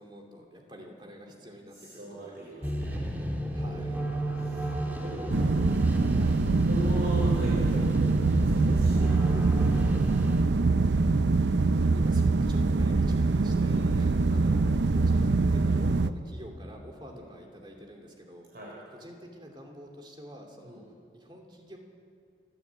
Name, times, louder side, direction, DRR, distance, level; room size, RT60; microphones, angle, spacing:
voice 1, 0.0-1.7 2.1-2.4 3.5-4.0 5.0-5.8 6.1-6.4 11.9-18.5 19.0-20.8 21.1-21.8, equal, 25° right, 1 dB, 2.7 m, -47 dB
voice 2, 1.7-3.1 3.6-4.7 5.0-5.3 6.6-10.4 13.6-14.3 17.1-17.3 18.5-18.8 20.6-20.9, right 1 dB, 55° right, -4 dB, 4.1 m, -40 dB
sound 1, 2.6-10.4, right 1 dB, 10° right, 1.7 m, -33 dB
sound 2, 5.3-16.1, right 3 dB, 80° right, 0.6 m, -24 dB
28.5 x 10.5 x 8.7 m, 2.3 s
head